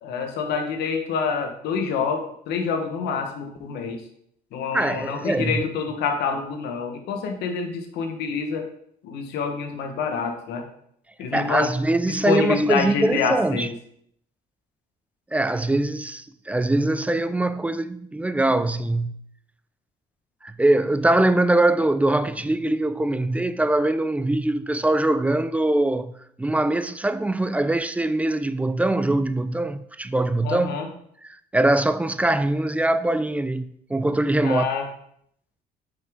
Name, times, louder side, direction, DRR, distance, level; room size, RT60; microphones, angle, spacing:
voice 1, 0.0-4.0 4.5-8.7 9.0-10.6 11.2-11.7 12.1-13.7 30.4-30.9 34.4-34.9, left 5 dB, 80° left, 1.2 m, -27 dB
voice 2, 4.7-5.6 11.3-13.7 15.3-19.2 20.4-26.1 26.4-30.8 31.2-34.7, right 2 dB, 10° right, 0.3 m, -22 dB
6.2 x 5.7 x 3.6 m
cardioid pair, 110°, 17 cm